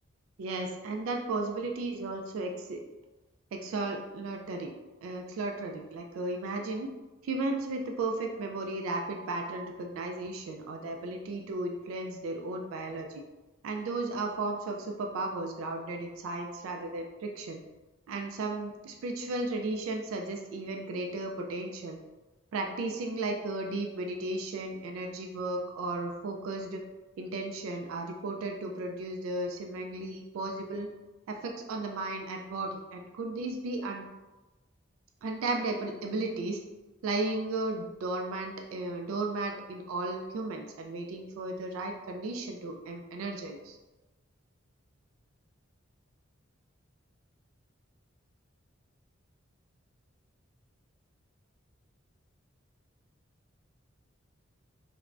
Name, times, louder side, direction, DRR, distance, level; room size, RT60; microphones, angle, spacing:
voice 1, 0.4-2.8 3.5-4.7 5.0-6.9 7.2-13.2 13.6-17.6 18.1-22.0 22.5-26.8 27.2-30.9 31.3-34.1 35.2-36.6 37.0-43.8, right 2 dB, 85° right, 3 dB, 0.3 m, -35 dB
3.2 x 2.1 x 2.4 m, 1.1 s
head